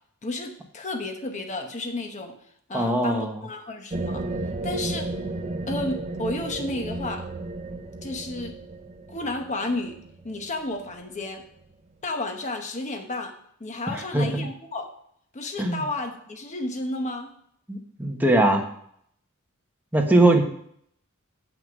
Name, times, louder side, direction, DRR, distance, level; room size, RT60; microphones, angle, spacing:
voice 1, 0.2-2.3 2.7-4.2 4.6-5.1 5.7-7.3 8.0-8.5 9.1-10.0 10.2-11.4 12.0-13.3 13.6-14.9 15.3-17.3, left 2 dB, 35° left, 4 dB, 1.0 m, -32 dB
voice 2, 2.7-3.3 13.9-14.5 15.6-15.8 17.7-18.6 19.9-20.4, right 1 dB, 10° right, 2 dB, 1.2 m, -21 dB
sound 1, 3.9-11.2, right 2 dB, 30° right, 0.6 m, -33 dB
8.0 x 5.7 x 6.1 m, 0.67 s
head